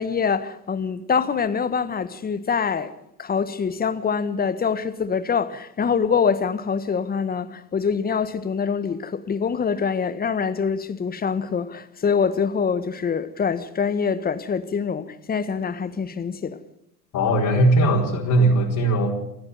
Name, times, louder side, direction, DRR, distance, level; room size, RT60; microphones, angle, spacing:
voice 1, 0.0-2.9 3.2-16.6, left 6 dB, 20° left, 1.5 m, -25 dB
voice 2, 17.1-19.1, right 1 dB, 40° left, 4.4 m, -19 dB
28.5 x 9.6 x 9.4 m
hypercardioid pair, 90°, 49 cm